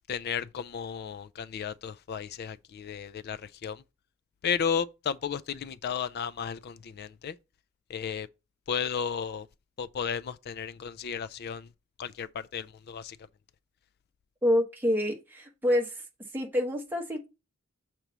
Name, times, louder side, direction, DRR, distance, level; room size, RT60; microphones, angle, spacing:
voice 1, 0.1-3.8 4.4-7.4 7.9-8.3 8.7-9.5 9.8-11.7 12.0-13.2, left 7 dB, 50° left, 0.4 m, -34 dB
voice 2, 14.4-16.0 16.3-17.3, left 1 dB, 10° right, 1.2 m, -27 dB
6.6 x 3.0 x 5.9 m
head